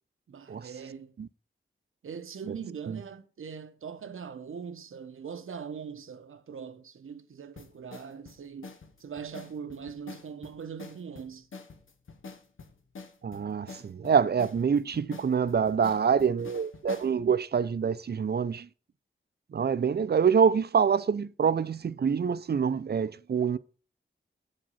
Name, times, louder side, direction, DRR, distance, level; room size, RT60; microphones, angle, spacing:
voice 1, 0.3-1.2 2.0-8.7 9.0-11.5, right 6 dB, 85° right, 0.8 m, -41 dB
sound 1, 7.6-17.2, left 4 dB, 75° left, 1.0 m, -47 dB
voice 2, 13.2-18.7 19.5-23.6, right 6 dB, 50° right, 0.5 m, -26 dB
8.2 x 5.1 x 5.6 m
wide cardioid pair, 65°, 21 cm